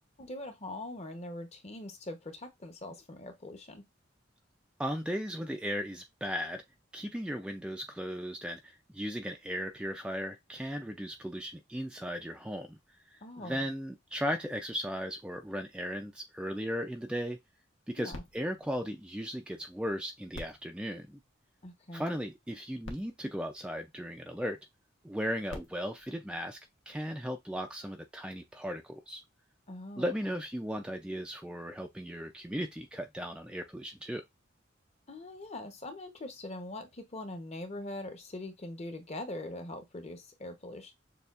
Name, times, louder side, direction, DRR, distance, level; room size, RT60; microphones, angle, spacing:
voice 1, 0.2-3.8 13.2-13.6 18.0-18.2 21.6-22.1 29.7-30.4 35.1-40.9, left 1 dB, 35° left, 0.8 m, -42 dB
voice 2, 4.8-6.6 6.9-12.8 13.1-17.4 17.9-21.2 21.9-24.6 25.0-26.6 26.9-29.2 30.0-34.2, equal, 5° right, 0.3 m, -36 dB
sound 1, 18.1-19.7 20.3-21.9 22.5-22.6 22.8-24.4 25.2-27.1 27.8-27.9, left 1 dB, 80° left, 1.0 m, -50 dB
6.8 x 2.3 x 2.4 m
head